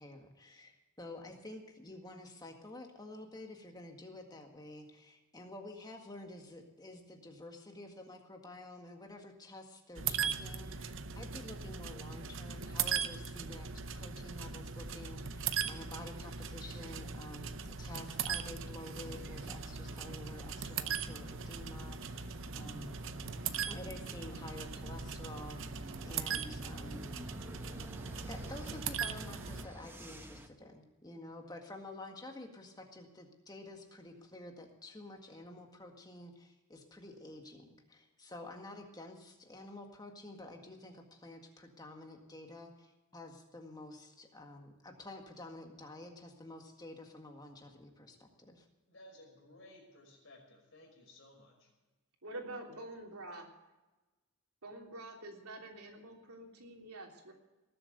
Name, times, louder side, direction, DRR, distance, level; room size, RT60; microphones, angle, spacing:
voice 1, 0.0-23.0 23.7-27.0 28.3-48.7, left 2 dB, 20° left, 3 dB, 1.8 m, -50 dB
sound 1, 10.0-29.6, right 6 dB, 60° right, 0.7 m, -39 dB
sound 2, 18.9-30.5, equal, 10° right, 0.9 m, -51 dB
voice 2, 48.9-51.7, left 1 dB, 60° left, 0 dB, 5.3 m, -57 dB
voice 3, 52.2-53.5 54.6-57.3, right 2 dB, 90° right, 1 dB, 3.3 m, -47 dB
19.0 x 7.8 x 8.0 m, 1.1 s
head